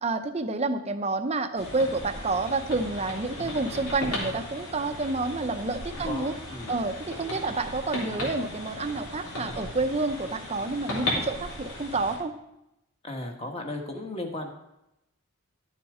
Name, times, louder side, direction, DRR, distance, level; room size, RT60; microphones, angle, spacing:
voice 1, 0.0-6.3 6.7-12.3, right 3 dB, 30° right, 8 dB, 0.7 m, -29 dB
sound 1, 1.6-12.2, left 1 dB, 90° left, 3.7 m, -36 dB
voice 2, 5.9-6.7 13.0-14.5, left 1 dB, 25° left, 3 dB, 1.3 m, -35 dB
12.5 x 7.1 x 4.9 m, 0.87 s
head